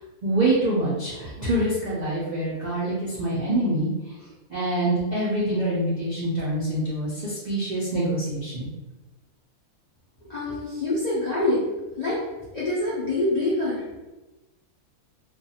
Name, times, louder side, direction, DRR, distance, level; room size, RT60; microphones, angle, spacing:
voice 1, 0.2-3.9 4.5-8.7, right 1 dB, 85° right, -8 dB, 0.3 m, -25 dB
voice 2, 10.3-11.6 12.0-12.2 12.5-14.0, left 2 dB, 90° left, -9 dB, 0.3 m, -25 dB
2.4 x 2.2 x 2.7 m, 1.1 s
omnidirectional pair, 1.6 m